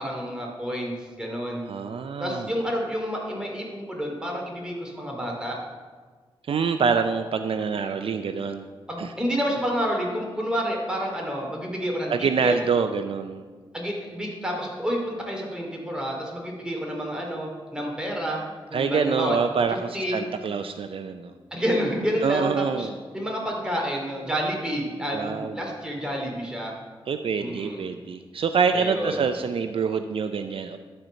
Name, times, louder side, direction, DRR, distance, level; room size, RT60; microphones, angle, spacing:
voice 1, 0.0-1.7 2.2-5.6 8.9-12.6 13.7-19.4 19.9-20.2 21.5-26.7 27.4-27.8 28.7-29.2, equal, 10° right, -1 dB, 2.5 m, -29 dB
voice 2, 1.7-2.5 6.5-8.7 9.0-9.1 12.1-13.5 18.7-21.3 22.2-23.0 25.1-25.6 27.1-30.8, right 5 dB, 65° right, 8 dB, 0.5 m, -26 dB
12.5 x 4.5 x 6.4 m, 1.5 s
cardioid pair, 75°, 10 cm